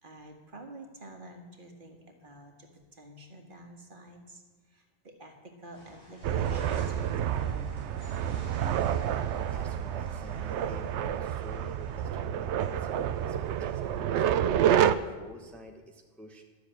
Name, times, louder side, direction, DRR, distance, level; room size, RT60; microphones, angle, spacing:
voice 1, 0.0-8.1, right 1 dB, 45° right, 3 dB, 1.7 m, -49 dB
sound 1, 5.7-14.8, equal, 55° left, 5.6 m, -54 dB
sound 2, 6.2-15.0, right 9 dB, 80° right, 0.9 m, -29 dB
voice 2, 9.2-16.4, right 1 dB, ahead, 2 dB, 1.0 m, -49 dB
12.5 x 6.8 x 8.9 m, 1.4 s
omnidirectional pair, 1.2 m